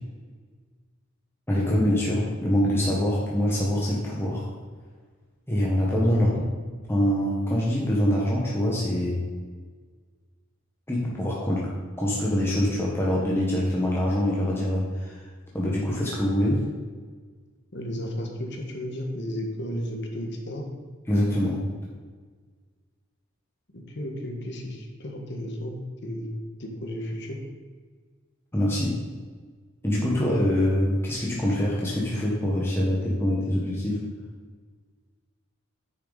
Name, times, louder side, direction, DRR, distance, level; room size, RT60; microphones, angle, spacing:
voice 1, 1.5-4.5 5.5-6.3 6.9-9.2 10.9-11.7 12.0-15.2 15.5-16.7 21.1-21.6 28.5-29.0 29.8-34.0, equal, 10° left, -5 dB, 1.3 m, -24 dB
voice 2, 6.1-6.4 17.7-20.7 23.7-25.7 26.0-26.3 26.6-27.4, equal, 60° left, 2 dB, 1.6 m, -33 dB
9.7 x 6.8 x 4.1 m, 1.5 s
head